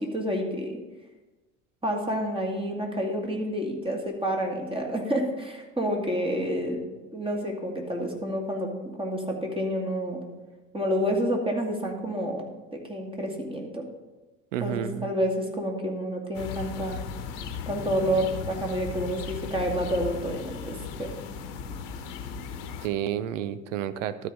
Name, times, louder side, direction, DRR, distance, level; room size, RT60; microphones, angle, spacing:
voice 1, 0.1-0.8 1.8-6.8 7.1-8.7 9.0-10.2 10.7-12.4 12.7-13.8 14.6-17.0 17.7-21.1, equal, 15° right, 1 dB, 2.3 m, -29 dB
voice 2, 14.5-15.1 22.8-24.3, right 10 dB, 80° right, 14 dB, 0.6 m, -30 dB
sound 1, 16.3-22.9, left 6 dB, 70° left, 1.1 m, -37 dB
12.5 x 4.9 x 5.6 m, 1.1 s
hypercardioid pair, 65°, 37 cm